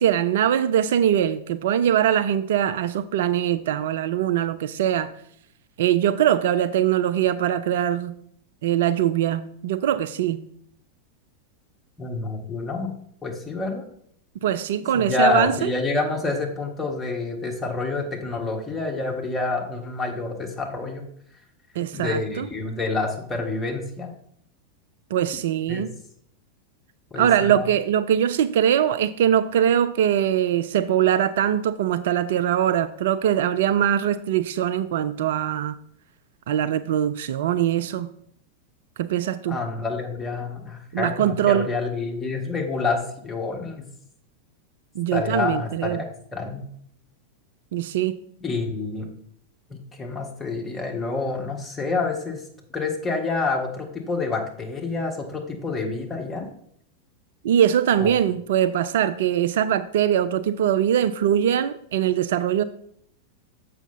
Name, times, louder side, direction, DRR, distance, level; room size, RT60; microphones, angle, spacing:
voice 1, 0.0-5.1 5.8-8.2 8.6-10.5 14.4-15.7 21.8-22.5 25.1-25.9 27.2-35.8 36.5-38.1 39.0-39.6 40.9-41.7 45.0-46.0 47.7-48.2 57.4-62.6, right 10 dB, 55° right, 0.3 m, -22 dB
voice 2, 12.0-12.9 13.2-13.8 14.9-21.0 21.9-24.1 25.7-25.8 27.1-27.7 39.5-43.8 45.1-46.0 46.3-46.7 48.4-49.1 49.7-52.4 52.7-56.4 58.0-58.1, left 3 dB, 15° left, 1.5 m, -28 dB
6.9 x 5.6 x 4.1 m
figure-of-eight pair, 90°, 0 cm